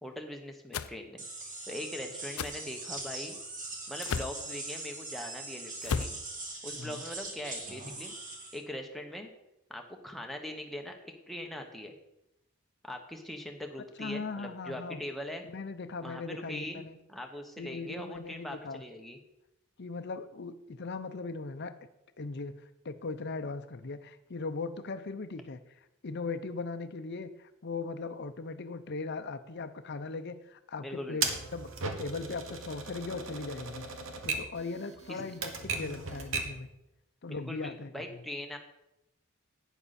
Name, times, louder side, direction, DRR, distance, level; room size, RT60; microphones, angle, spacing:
voice 1, 0.0-3.4 3.9-6.1 6.6-8.2 8.5-9.3 9.7-11.9 12.8-15.4 16.0-16.8 17.1-19.2 30.8-31.3 34.1-34.2 35.1-35.2 37.3-38.6, left 1 dB, ahead, 2 dB, 1.1 m, -41 dB
sound 1, 0.7-0.9 2.4-2.6 4.0-4.4 5.8-6.2, left 5 dB, 90° left, 0.5 m, -33 dB
sound 2, 1.2-8.6, right 2 dB, 40° right, 2.1 m, -41 dB
voice 2, 6.7-7.0 14.0-15.0 15.4-17.0 17.6-18.8 19.8-21.7 22.2-25.6 26.0-31.7 32.0-33.9 34.2-36.7 37.2-38.0, left 3 dB, 55° left, 10 dB, 0.7 m, -39 dB
Typewriter, 31.2-36.6, right 4 dB, 65° right, 1.3 m, -37 dB
11.5 x 9.1 x 4.2 m, 0.88 s
head